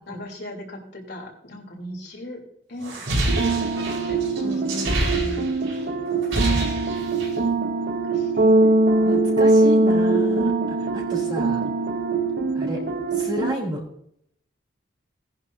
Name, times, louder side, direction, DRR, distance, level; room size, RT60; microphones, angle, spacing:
voice 1, 0.1-2.4 2.7-5.1 8.1-8.5, left 1 dB, 55° left, -1 dB, 3.3 m, -39 dB
sound 1, 2.8-5.8 6.1-7.4, right 1 dB, 90° right, 4.6 m, -26 dB
sound 2, 3.3-13.5, right 2 dB, 55° right, 0.8 m, -22 dB
voice 2, 4.4-5.5 9.0-10.5 10.8-11.7 12.5-12.8 13.1-13.8, equal, 25° right, -1 dB, 3.3 m, -32 dB
18.5 x 11.0 x 2.7 m, 0.71 s
head